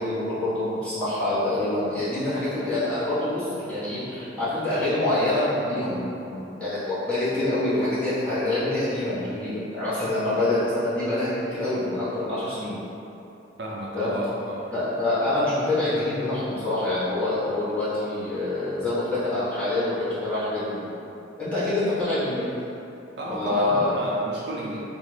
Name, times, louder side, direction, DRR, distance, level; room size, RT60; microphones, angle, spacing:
voice 1, 0.0-12.7 13.9-14.1 14.7-20.8 21.4-22.4 23.3-23.9, left 2 dB, 5° left, -15 dB, 1.3 m, -26 dB
voice 2, 13.6-14.7 23.2-24.9, right 1 dB, 65° right, -4 dB, 0.5 m, -32 dB
3.6 x 2.4 x 3.2 m, 2.8 s
head